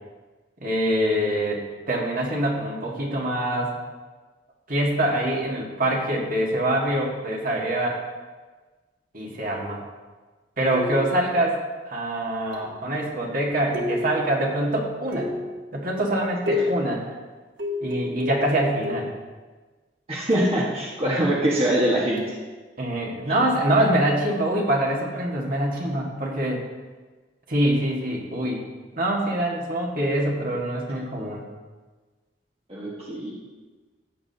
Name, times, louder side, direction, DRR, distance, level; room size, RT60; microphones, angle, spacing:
voice 1, 0.6-3.7 4.7-8.0 9.1-9.8 10.6-15.3 15.7-17.0 17.8-19.1 22.8-26.6 27.5-28.6 29.0-31.4, right 1 dB, 55° right, -2 dB, 1.8 m, -24 dB
sound 1, 10.7-11.3 12.5-12.9 13.7-14.3 15.1-15.6 16.5-16.9 17.6-19.2 20.3-20.7 22.2-22.4, left 2 dB, 75° right, 1.7 m, -30 dB
voice 2, 20.1-22.4 32.7-33.3, right 1 dB, 35° right, -5 dB, 1.5 m, -23 dB
15.0 x 8.5 x 2.9 m, 1.3 s
head